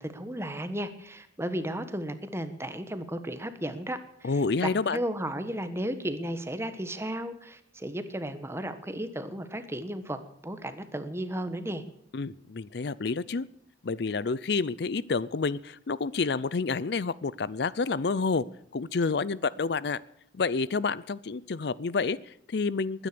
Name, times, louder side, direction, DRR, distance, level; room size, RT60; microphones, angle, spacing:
voice 1, 0.0-11.8, right 1 dB, 15° right, 10 dB, 1.3 m, -34 dB
voice 2, 4.2-5.0 12.1-13.5 13.8-18.4 18.7-20.0 20.3-23.1, left 4 dB, 60° left, 19 dB, 0.5 m, -29 dB
20.5 x 10.0 x 6.8 m, 0.71 s
head